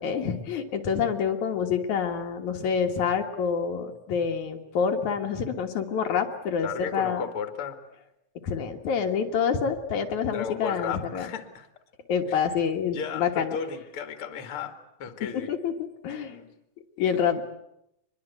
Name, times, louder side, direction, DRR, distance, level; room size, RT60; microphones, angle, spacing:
voice 1, 0.0-7.2 8.4-11.3 12.1-13.6 15.3-15.7 16.0-16.4 17.0-17.4, left 7 dB, 75° left, 3 dB, 3.0 m, -27 dB
voice 2, 6.6-7.8 10.3-11.7 12.3-12.4 12.9-14.7 15.0-15.5 16.3-16.5, left 6 dB, 50° left, 7 dB, 2.6 m, -34 dB
24.0 x 22.0 x 8.2 m, 0.82 s
omnidirectional pair, 3.4 m